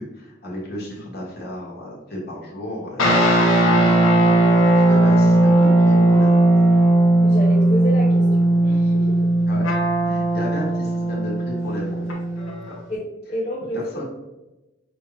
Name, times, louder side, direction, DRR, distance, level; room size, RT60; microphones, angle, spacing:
voice 1, 0.0-4.3 4.5-6.8 9.5-9.7 10.0-12.1 12.7-12.8 13.7-14.0, left 1 dB, 50° left, -4 dB, 1.4 m, -34 dB
sound 1, 3.0-12.7, right 1 dB, 80° left, 0.9 m, -17 dB
voice 2, 7.2-8.3 8.6-9.2 12.9-13.0 13.3-14.0, equal, 30° left, -7 dB, 0.7 m, -29 dB
5.7 x 2.5 x 3.2 m, 1.0 s
head